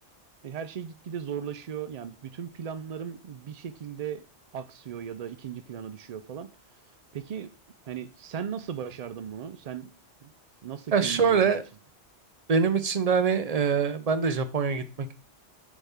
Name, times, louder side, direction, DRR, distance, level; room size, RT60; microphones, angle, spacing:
voice 1, 0.4-4.2 4.5-6.5 7.1-7.5 7.9-9.9 10.2-10.3 10.6-11.5, right 8 dB, 75° right, 0.3 m, -37 dB
voice 2, 10.9-11.6 12.5-15.1, right 6 dB, 40° right, 0.6 m, -24 dB
7.2 x 4.2 x 3.6 m
omnidirectional pair, 1.2 m